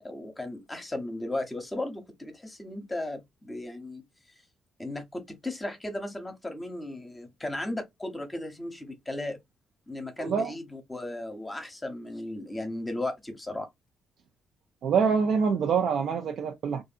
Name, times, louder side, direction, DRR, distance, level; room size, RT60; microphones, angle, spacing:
voice 1, 0.0-4.0 4.8-9.4 9.9-13.7, left 1 dB, 15° left, 0.8 m, -36 dB
voice 2, 10.2-10.5 14.8-16.8, right 6 dB, 70° right, 0.4 m, -25 dB
2.6 x 2.4 x 2.5 m
cardioid pair, 90°, 0 cm